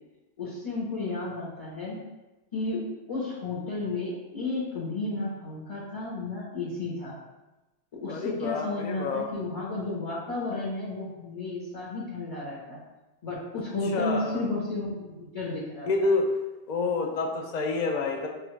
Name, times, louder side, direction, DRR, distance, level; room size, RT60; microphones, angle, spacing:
voice 1, 0.4-2.0 2.5-2.8 3.1-7.2 7.9-12.8 13.2-15.9, left 2 dB, 35° left, -7 dB, 0.7 m, -33 dB
voice 2, 8.1-9.3 13.9-14.4 15.9-16.3 16.7-18.3, left 3 dB, 65° left, 2 dB, 0.4 m, -28 dB
4.9 x 2.3 x 3.1 m, 1.0 s
omnidirectional pair, 1.2 m